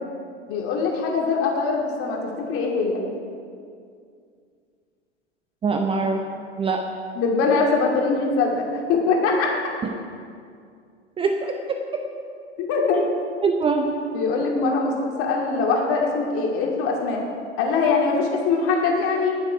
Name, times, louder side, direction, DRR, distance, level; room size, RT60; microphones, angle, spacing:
voice 1, 0.5-3.0 7.1-9.5 12.6-13.0 14.1-17.2 17.6-19.4, left 4 dB, 40° left, -1 dB, 2.8 m, -22 dB
voice 2, 5.6-6.2 6.6-6.8 11.2-11.8 12.9-13.0 13.4-13.9, right 4 dB, 15° right, 4 dB, 0.7 m, -23 dB
20.0 x 7.6 x 4.7 m, 2.3 s
hypercardioid pair, 100°, 36 cm